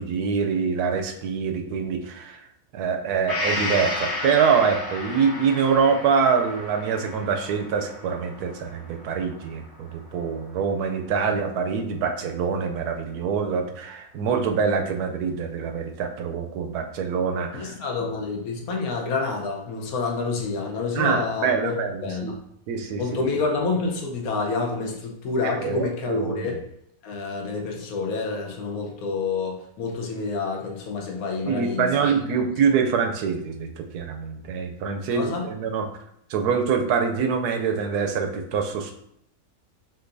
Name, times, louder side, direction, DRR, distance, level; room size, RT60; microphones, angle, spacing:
voice 1, 0.0-2.5 2.7-17.8 20.9-22.3 22.7-23.2 25.4-26.5 31.5-35.9 36.3-39.0, right 6 dB, 80° right, 5 dB, 1.1 m, -25 dB
Gong, 3.3-10.9 11.3-11.4, left 2 dB, 15° left, 1.1 m, -33 dB
voice 2, 17.5-21.8 22.0-22.4 23.0-26.6 27.0-32.1 35.1-35.5, left 4 dB, 70° left, 0 dB, 1.3 m, -28 dB
5.9 x 2.7 x 2.6 m, 0.74 s
omnidirectional pair, 1.7 m